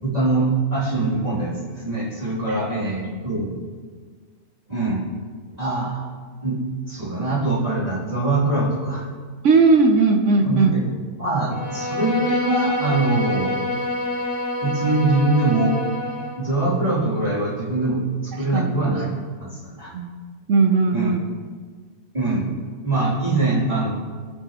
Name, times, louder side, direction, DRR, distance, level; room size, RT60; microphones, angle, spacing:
voice 1, 0.0-3.5 4.7-5.0 5.6-6.1 6.4-6.6 6.9-9.1 10.4-10.9 11.2-13.5 14.6-15.7 16.4-19.1 19.4-19.9 20.9-21.1 22.1-22.5 22.8-23.9, right 2 dB, 20° right, -9 dB, 3.0 m, -23 dB
voice 2, 9.4-10.7 18.5-18.7 19.9-20.1 20.5-21.2, right 4 dB, 60° right, 5 dB, 0.8 m, -17 dB
Bowed string instrument, 11.5-16.4, left 1 dB, 85° left, 2.2 m, -27 dB
15.5 x 6.9 x 3.0 m, 1.5 s
omnidirectional pair, 1.8 m